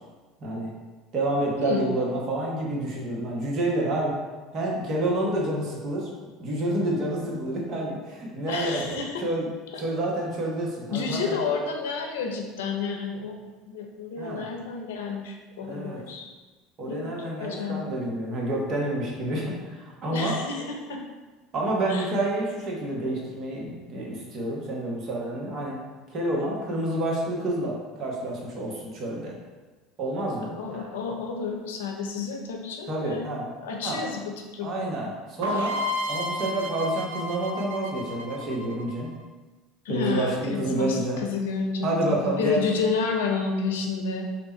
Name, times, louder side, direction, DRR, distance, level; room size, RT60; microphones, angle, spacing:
voice 1, 0.4-0.7 1.1-4.1 4.5-6.1 6.4-8.8 9.2-9.5 9.8-11.4 14.2-14.5 15.6-16.0 16.8-20.3 21.5-25.8 26.1-29.3 30.0-30.9 32.9-33.4 33.8-34.0 34.6-35.8 36.1-39.1 39.9-41.2 41.8-42.6, right 1 dB, 50° right, -2 dB, 1.2 m, -28 dB
voice 2, 8.5-9.3 10.9-13.4 13.7-16.3 16.9-17.1 17.4-17.9 20.1-21.0 21.9-22.1 30.4-35.1 39.8-44.3, left 5 dB, 80° left, 2 dB, 0.6 m, -30 dB
sound 1, 35.4-39.2, left 1 dB, 85° right, 0.4 m, -31 dB
3.4 x 2.9 x 4.2 m, 1.3 s
hypercardioid pair, 75°, 0 cm